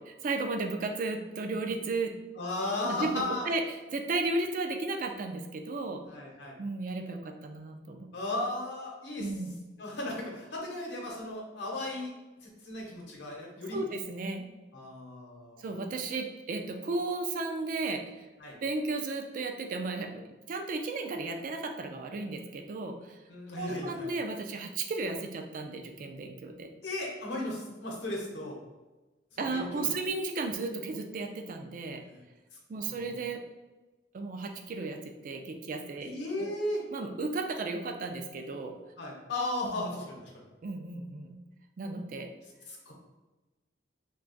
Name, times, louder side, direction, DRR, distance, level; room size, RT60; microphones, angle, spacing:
voice 1, 0.1-2.1 2.8-3.6 3.9-6.0 6.6-8.1 9.2-9.5 13.7-14.5 15.6-18.3 18.6-20.2 20.5-23.2 23.5-26.7 29.4-32.0 32.7-33.4 34.1-35.0 35.2-36.1 36.4-36.5 36.9-38.8 40.6-41.4 41.8-42.3, right 3 dB, 50° right, 4 dB, 0.3 m, -34 dB
voice 2, 2.3-3.5 6.1-6.6 8.1-9.3 9.8-12.1 12.4-13.8 14.7-15.6 18.4-18.6 23.3-24.1 26.8-28.6 29.3-29.9 32.0-32.2 32.9-33.2 36.0-36.9 39.0-40.4 42.7-42.9, left 2 dB, 75° left, -1 dB, 0.8 m, -36 dB
2.4 x 2.3 x 3.8 m, 1.2 s
head